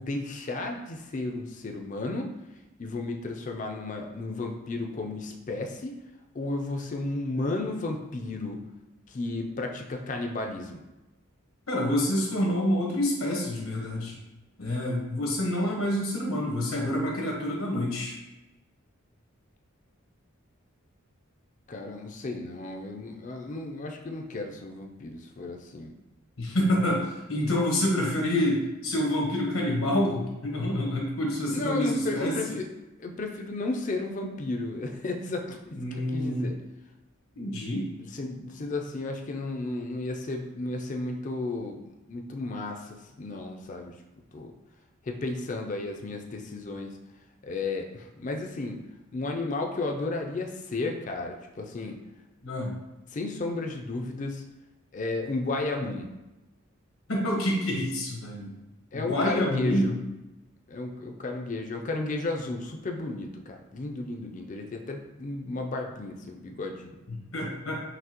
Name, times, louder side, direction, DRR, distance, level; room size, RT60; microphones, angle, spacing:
voice 1, 0.0-2.3 2.8-6.0 6.3-8.6 9.1-10.8 21.7-25.9 31.5-32.7 33.0-35.6 36.1-36.5 38.0-43.9 44.3-44.5 45.0-47.0 47.4-48.8 49.1-52.0 53.1-54.5 54.9-56.1 58.9-59.9 60.7-67.0, left 2 dB, 35° left, 3 dB, 0.4 m, -33 dB
voice 2, 11.7-14.1 14.6-18.1 26.4-32.3 35.7-36.5 37.4-37.9 52.4-52.7 57.1-58.5 58.9-59.9 67.1-67.8, left 1 dB, 85° left, -2 dB, 1.2 m, -27 dB
5.9 x 2.8 x 2.9 m, 1.0 s
head